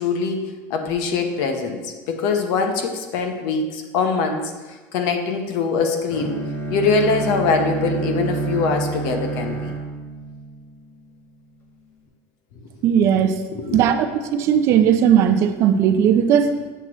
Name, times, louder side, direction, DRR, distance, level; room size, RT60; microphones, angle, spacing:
voice 1, 0.0-4.5 4.9-6.4 6.7-9.7 13.5-14.0, left 4 dB, 60° left, 5 dB, 0.8 m, -23 dB
Bowed string instrument, 6.1-11.1, right 3 dB, 40° left, 1.4 m, -28 dB
voice 2, 12.8-13.3 13.7-16.5, right 8 dB, 45° right, 9 dB, 0.4 m, -17 dB
7.9 x 3.0 x 6.0 m, 1.3 s
cardioid pair, 170°, 7 cm